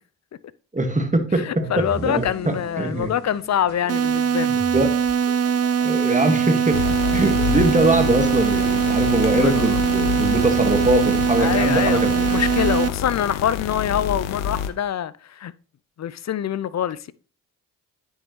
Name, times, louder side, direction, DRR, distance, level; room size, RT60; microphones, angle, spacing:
voice 1, 0.7-1.5 1.8-3.1 4.7-4.9 5.8-6.8 7.1-12.4, right 2 dB, 15° right, 1.9 m, -22 dB
voice 2, 1.3-4.6 9.0-9.8 11.4-15.5 16.0-17.1, left 9 dB, 40° left, 0.5 m, -25 dB
sound 1, 1.6-12.9, equal, 20° left, 4.1 m, -39 dB
sound 2, 3.9-12.9, right 7 dB, 35° right, 0.7 m, -21 dB
sound 3, 6.7-14.7, left 8 dB, 85° left, 0.8 m, -28 dB
9.9 x 5.5 x 3.1 m
hypercardioid pair, 45°, 43 cm